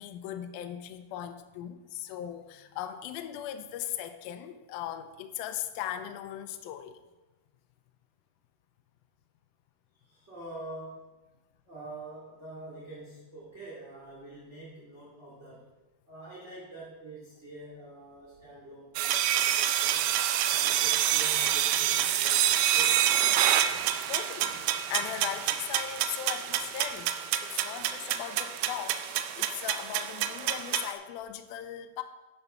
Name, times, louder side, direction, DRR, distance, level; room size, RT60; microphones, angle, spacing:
voice 1, 0.0-7.0 23.7-27.1 27.4-32.0, left 11 dB, 80° left, 7 dB, 2.3 m, -38 dB
voice 2, 10.0-11.0 11.7-15.6 16.1-20.1 20.5-23.0, right 2 dB, 25° right, -6 dB, 1.7 m, -45 dB
sound 1, 19.0-30.9, right 11 dB, 80° right, 2.4 m, -27 dB
11.0 x 5.8 x 5.5 m, 1.1 s
omnidirectional pair, 4.5 m